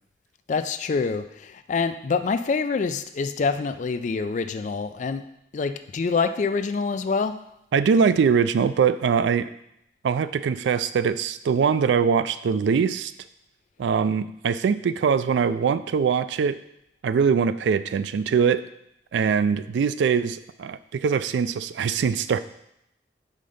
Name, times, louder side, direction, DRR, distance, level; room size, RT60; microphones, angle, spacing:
voice 1, 0.5-5.2 5.5-7.4, left 4 dB, 40° left, 10 dB, 0.3 m, -26 dB
voice 2, 7.7-9.5 10.0-13.1 13.8-16.6 17.0-18.6 19.1-22.4, right 6 dB, 80° right, 13 dB, 0.3 m, -22 dB
5.1 x 3.8 x 5.4 m, 0.79 s
head